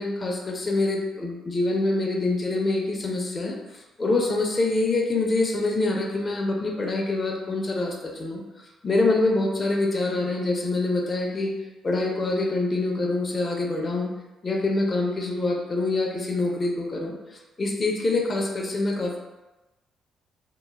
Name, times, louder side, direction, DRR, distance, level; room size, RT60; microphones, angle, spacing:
voice 1, 0.0-3.6 4.0-8.4 8.8-11.5 11.8-14.1 14.4-17.1 17.6-19.2, left 2 dB, 30° left, 0 dB, 0.5 m, -25 dB
2.8 x 2.2 x 2.3 m, 1.0 s
cardioid pair, 90°, 0 cm